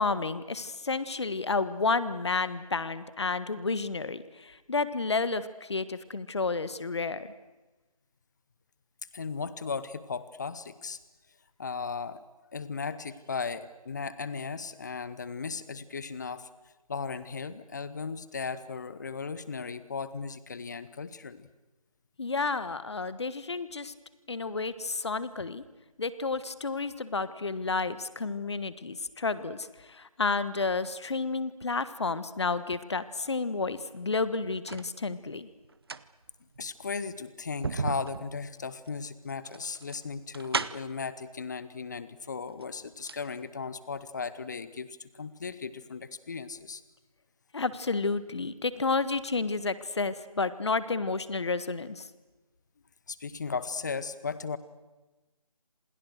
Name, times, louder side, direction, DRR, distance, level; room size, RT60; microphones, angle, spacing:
voice 1, 0.0-7.3 22.2-23.9 24.3-25.6 26.0-35.5 47.5-52.1, left 4 dB, 45° left, 15 dB, 1.4 m, -31 dB
voice 2, 9.1-11.0 11.6-12.2 12.5-16.5 16.9-21.5 36.6-46.8 53.1-54.6, left 5 dB, 30° left, 16 dB, 1.1 m, -36 dB
sound 1, 34.0-34.9 35.6-41.0 42.0-42.1 42.5-43.3 43.6-43.7, right 4 dB, 40° right, 0.8 m, -36 dB
27.5 x 27.5 x 6.5 m, 1.1 s
figure-of-eight pair, 160°, 19 cm